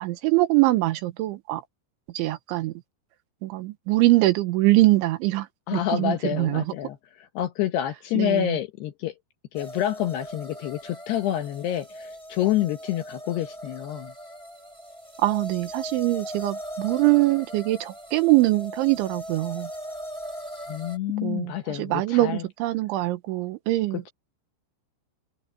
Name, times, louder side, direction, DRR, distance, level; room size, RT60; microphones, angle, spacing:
voice 1, 0.0-1.6 2.1-2.7 3.4-5.5 5.7-6.6 8.1-8.6 15.2-19.7 21.2-24.0, right 18 dB, 75° right, 3.2 m, -23 dB
voice 2, 5.7-9.1 9.5-14.1 20.7-22.4, left 12 dB, 75° left, 2.6 m, -28 dB
sound 1, 9.5-21.0, equal, 5° right, 4.4 m, -39 dB
omnidirectional pair, 5.7 m